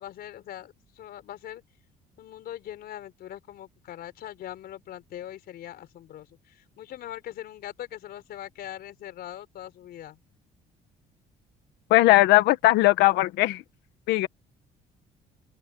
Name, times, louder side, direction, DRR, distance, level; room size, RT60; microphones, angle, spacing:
voice 1, 0.0-1.6 2.2-10.2, left 12 dB, 65° left, 4.2 m, -41 dB
voice 2, 11.9-13.6 14.1-14.3, left 17 dB, 85° left, 1.6 m, -19 dB
open air
cardioid pair, 110°, 17 cm